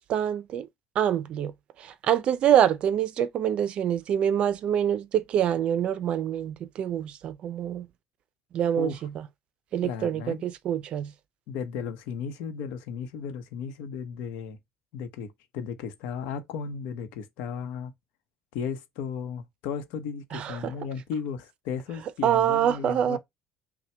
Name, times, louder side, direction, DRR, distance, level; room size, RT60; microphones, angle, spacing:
voice 1, 0.1-0.7 1.0-1.5 1.8-7.9 8.5-9.1 9.7-11.1 20.3-20.7 22.2-23.2, right 10 dB, 45° right, 0.4 m, -25 dB
voice 2, 8.8-9.1 9.8-10.5 11.5-14.6 14.9-17.9 18.5-23.2, left 6 dB, 90° left, 0.8 m, -35 dB
5.6 x 2.2 x 3.3 m
cardioid pair, 160°, 3 cm